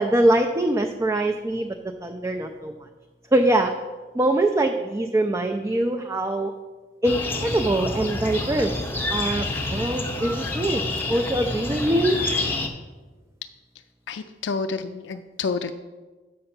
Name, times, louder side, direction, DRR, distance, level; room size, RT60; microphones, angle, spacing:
voice 1, 0.0-1.7 2.0-2.7 3.3-3.7 4.2-6.5 7.0-8.7 9.1-10.8 11.1-12.2, right 1 dB, 15° right, 4 dB, 0.3 m, -23 dB
sound 1, 7.0-12.7, left 2 dB, 10° left, 0.7 m, -28 dB
voice 2, 14.1-15.7, left 4 dB, 70° left, 8 dB, 0.4 m, -29 dB
7.6 x 5.5 x 5.8 m, 1.3 s
head